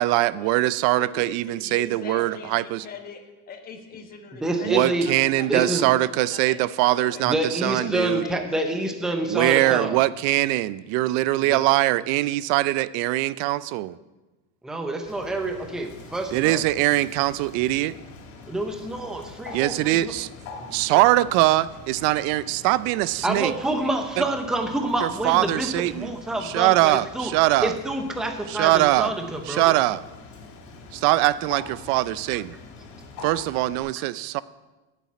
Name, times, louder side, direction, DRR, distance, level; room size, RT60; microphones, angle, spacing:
voice 1, 0.0-2.9 4.6-8.2 9.3-14.0 16.3-18.0 19.5-20.3 20.7-23.5 25.0-26.1 26.4-27.7 28.5-29.1 29.5-30.0 30.9-32.6 33.2-34.4, right 17 dB, 60° right, 18 dB, 0.5 m, -22 dB
voice 2, 1.0-3.2 3.5-7.2 7.8-8.8 9.0-10.0, left 5 dB, 25° left, 5 dB, 1.2 m, -42 dB
voice 3, 4.4-5.1 5.5-5.9 7.2-10.0 11.5-11.6 14.6-16.6 18.5-20.1 20.6-21.0 23.2-27.3 27.6-29.7, right 1 dB, ahead, 5 dB, 0.6 m, -27 dB
Bird, 15.1-33.8, left 3 dB, 60° left, 2.6 m, -44 dB
9.7 x 7.4 x 8.4 m, 1.1 s
cardioid pair, 170°, 35 cm